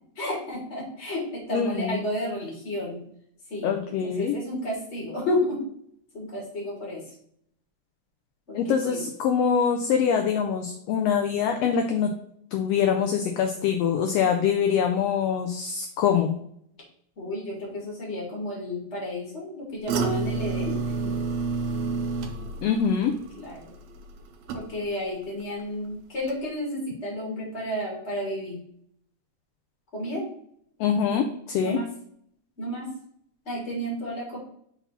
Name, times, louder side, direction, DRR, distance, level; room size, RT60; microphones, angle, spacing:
voice 1, 0.2-3.0 3.5-5.6 6.1-7.2 8.5-9.0 17.2-20.8 21.0-21.1 23.4-23.7 24.5-28.6 29.9-30.3 31.6-31.9 32.6-32.9 33.4-34.4, left 1 dB, 25° left, -3 dB, 2.2 m, -32 dB
voice 2, 1.5-2.0 3.6-4.4 8.5-12.1 12.5-16.4 22.6-23.1 30.8-31.8, left 7 dB, 75° left, 4 dB, 1.5 m, -24 dB
sound 1, 19.9-25.1 25.4-25.9 26.3-26.4, right 4 dB, 75° right, 1.8 m, -30 dB
5.7 x 4.1 x 4.1 m, 0.68 s
omnidirectional pair, 3.4 m